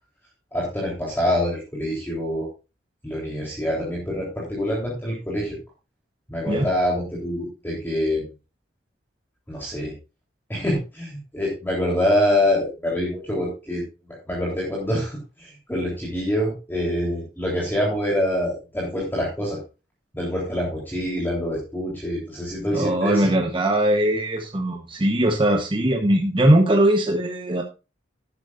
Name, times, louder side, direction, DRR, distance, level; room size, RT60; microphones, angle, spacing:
voice 1, 0.5-2.5 3.0-5.6 6.3-8.2 9.5-9.9 10.5-19.6 20.1-23.3, left 1 dB, 10° left, -4 dB, 3.6 m, -25 dB
voice 2, 22.7-27.6, right 1 dB, 25° right, 3 dB, 1.1 m, -20 dB
13.0 x 10.5 x 2.5 m, 0.30 s
head